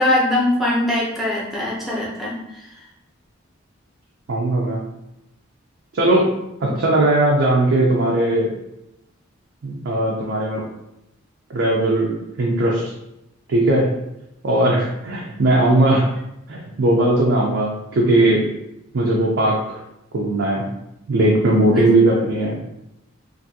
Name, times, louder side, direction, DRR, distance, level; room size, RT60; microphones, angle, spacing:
voice 1, 0.0-2.7 6.6-6.8 21.7-21.9, left 1 dB, ahead, -6 dB, 0.6 m, -22 dB
voice 2, 4.3-4.8 5.9-6.3 6.6-8.5 9.6-10.6 11.5-12.9 13.5-13.9 14.4-16.1 16.5-18.4 18.9-19.8 20.1-20.7 21.1-22.6, right 1 dB, 60° right, -3 dB, 0.4 m, -18 dB
2.6 x 2.5 x 2.6 m, 0.87 s
head